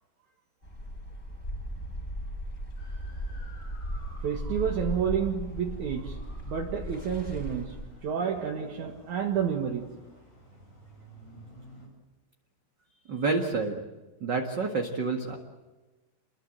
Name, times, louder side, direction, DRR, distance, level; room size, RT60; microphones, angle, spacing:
sound 1, 0.6-7.9, equal, 20° left, 5.6 m, -37 dB
sound 2, 2.8-11.9, equal, 65° left, 9.5 m, -54 dB
voice 1, 4.2-6.2 6.5-9.9, right 8 dB, 60° right, 1 dB, 2.9 m, -30 dB
voice 2, 13.1-13.8 14.2-15.3, right 4 dB, 40° right, 3 dB, 2.0 m, -28 dB
28.5 x 22.5 x 7.8 m, 1.2 s
omnidirectional pair, 4.0 m